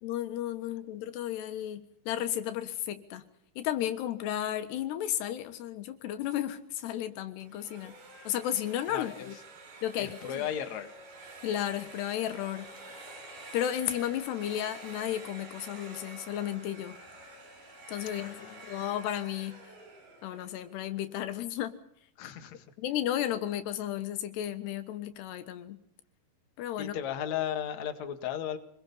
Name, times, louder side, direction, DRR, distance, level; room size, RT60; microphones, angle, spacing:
voice 1, 0.0-3.3 3.6-7.9 8.3-9.4 9.8-10.5 11.4-12.7 13.5-17.0 17.9-19.6 20.2-21.8 22.2-22.3 22.8-25.8 26.6-27.0, left 11 dB, 90° left, 10 dB, 3.5 m, -33 dB
sound 1, 7.4-21.3, right 2 dB, 70° right, 7.4 m, -49 dB
voice 2, 8.9-9.3 10.0-10.9 18.2-18.6 22.2-22.7 26.8-28.6, left 10 dB, 50° left, 7 dB, 2.7 m, -35 dB
26.5 x 21.0 x 5.6 m, 0.70 s
omnidirectional pair, 4.6 m